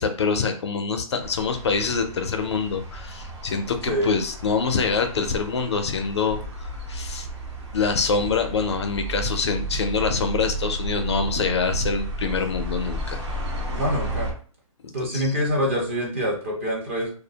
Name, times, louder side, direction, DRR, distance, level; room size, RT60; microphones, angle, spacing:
voice 1, 0.0-7.3 7.7-13.2 15.0-15.3, left 5 dB, 50° left, 6 dB, 0.4 m, -25 dB
sound 1, 1.2-14.3, right 1 dB, 55° right, 0.9 m, -33 dB
voice 2, 13.7-14.3 14.9-17.1, equal, 20° right, -3 dB, 0.5 m, -25 dB
2.3 x 2.1 x 2.7 m, 0.43 s
hypercardioid pair, 170°, 18 cm